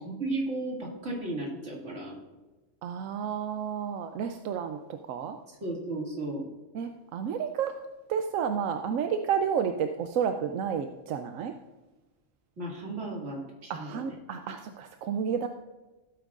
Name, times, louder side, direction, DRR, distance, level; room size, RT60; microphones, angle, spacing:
voice 1, 0.0-2.2 5.6-6.4 12.6-14.1, right 2 dB, 65° right, -4 dB, 2.6 m, -34 dB
voice 2, 2.8-5.4 6.7-7.8 8.1-11.5 13.7-15.5, right 7 dB, 90° right, 6 dB, 1.0 m, -31 dB
16.5 x 8.8 x 2.5 m, 1.1 s
omnidirectional pair, 1.3 m